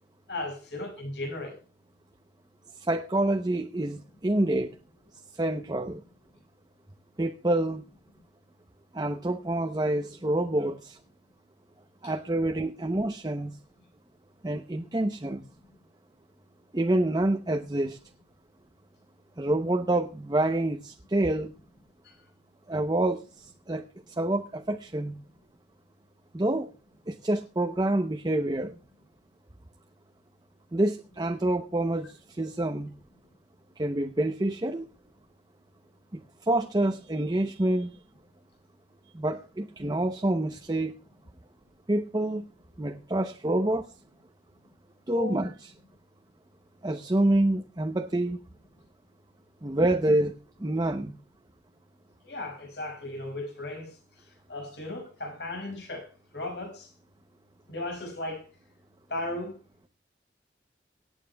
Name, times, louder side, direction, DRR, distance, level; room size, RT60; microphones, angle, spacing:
voice 1, 0.3-1.6 12.0-12.1 22.0-22.2 45.1-45.4 52.2-54.0 54.5-56.9 57.7-58.5 59.1-59.5, left 2 dB, 70° left, 5.8 m, -36 dB
voice 2, 2.8-4.8 5.3-6.0 7.2-7.8 8.9-11.0 12.0-13.6 14.4-15.5 16.7-18.0 19.4-21.5 22.7-25.1 26.3-26.7 27.1-28.7 30.7-32.9 33.8-34.9 36.1-37.9 39.1-40.9 41.9-42.4 42.8-43.9 45.1-45.7 46.8-48.4 49.6-50.3 50.6-51.1, right 1 dB, 25° right, 0.7 m, -27 dB
25.0 x 9.1 x 2.3 m
head